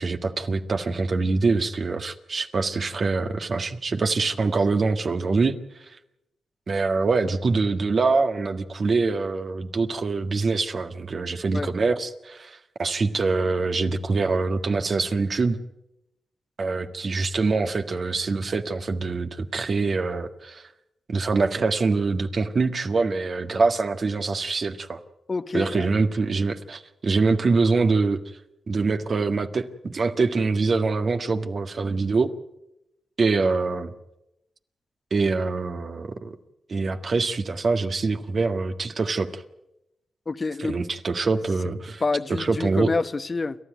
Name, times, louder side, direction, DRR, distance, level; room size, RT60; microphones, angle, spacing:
voice 1, 0.0-5.5 5.8-6.0 6.7-15.6 16.6-20.7 21.1-25.0 25.5-28.2 28.7-32.3 33.2-33.9 35.1-36.3 36.7-39.4 40.6-42.0 42.4-42.9, right 4 dB, 55° right, 1.7 m, -24 dB
voice 2, 25.3-25.9 40.3-40.8 42.0-43.6, left 3 dB, 45° left, 1.1 m, -27 dB
29.5 x 13.0 x 9.3 m
supercardioid pair, 40°, 0 cm